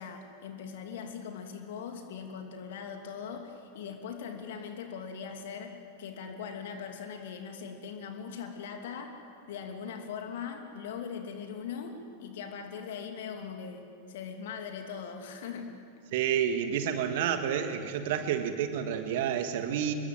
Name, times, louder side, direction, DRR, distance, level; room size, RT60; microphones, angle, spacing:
voice 1, 0.0-9.1 9.5-15.7, left 6 dB, 55° left, 4 dB, 2.8 m, -40 dB
voice 2, 16.1-19.9, right 9 dB, 50° right, 8 dB, 1.6 m, -29 dB
26.0 x 22.0 x 7.7 m, 2.4 s
figure-of-eight pair, 90°, 0 cm